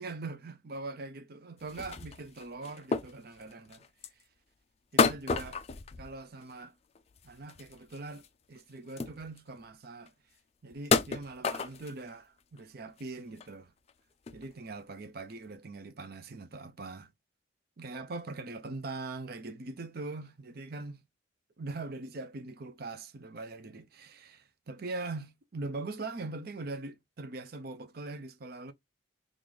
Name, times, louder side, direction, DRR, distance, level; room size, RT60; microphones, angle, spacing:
voice 1, 0.0-3.8 4.9-5.6 6.0-6.7 7.2-10.1 10.6-12.2 12.5-13.7 14.3-17.1 17.8-21.0 21.6-28.7, right 3 dB, 50° right, 0.5 m, -42 dB
sound 1, 1.6-4.2 5.0-6.6 6.9-8.3 8.6-8.7 8.9-9.6 10.1-10.2 10.7-12.1 12.6-12.7 13.0-13.5 13.9-14.0 14.3-14.4 15.3-15.4, left 5 dB, 30° left, 0.3 m, -31 dB
3.9 x 2.5 x 3.1 m
head